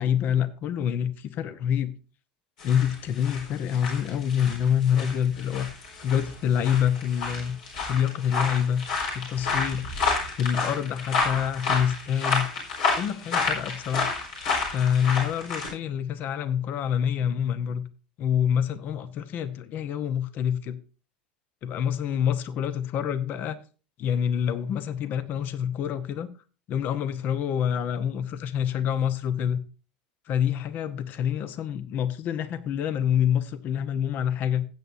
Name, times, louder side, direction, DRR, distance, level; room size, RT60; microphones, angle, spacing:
voice 1, 0.0-1.9 2.6-5.7 6.0-7.6 7.9-8.8 9.1-9.9 10.4-12.5 13.0-14.1 14.7-17.8 18.2-20.8 21.6-23.6 24.0-26.3 26.7-29.6 30.3-34.6, left 9 dB, 45° left, 0.9 m, -26 dB
sound 1, 2.6-15.7, left 4 dB, 70° left, 4.3 m, -30 dB
16.0 x 8.1 x 2.7 m
hypercardioid pair, 80°, 4 cm